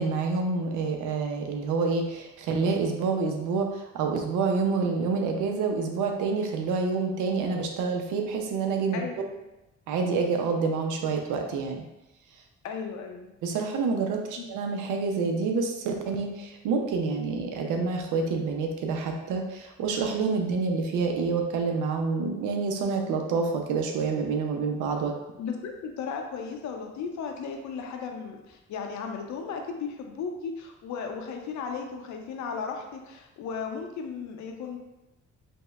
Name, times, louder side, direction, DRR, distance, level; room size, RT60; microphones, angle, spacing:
voice 1, 0.0-9.1 9.9-11.8 13.4-25.1, right 4 dB, 85° right, 3 dB, 0.5 m, -27 dB
voice 2, 8.9-9.3 12.6-13.3 14.4-14.5 25.4-34.8, left 5 dB, 70° left, 3 dB, 0.6 m, -35 dB
5.3 x 2.1 x 2.3 m, 0.97 s
cardioid pair, 90°, 30 cm